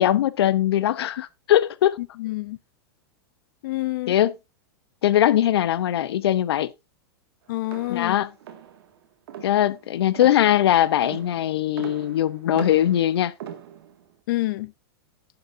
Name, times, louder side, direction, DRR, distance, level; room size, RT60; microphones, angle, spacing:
voice 1, 0.0-2.0 4.1-4.3 5.0-6.7 7.9-8.3 9.4-13.3, left 12 dB, 85° left, 0.8 m, -21 dB
voice 2, 2.0-2.6 3.6-4.2 7.5-8.1 14.3-14.7, left 18 dB, 60° left, 0.6 m, -28 dB
sound 1, 7.6-14.1, right 9 dB, 70° right, 2.0 m, -41 dB
11.0 x 10.5 x 2.7 m
supercardioid pair, 155°, 13 cm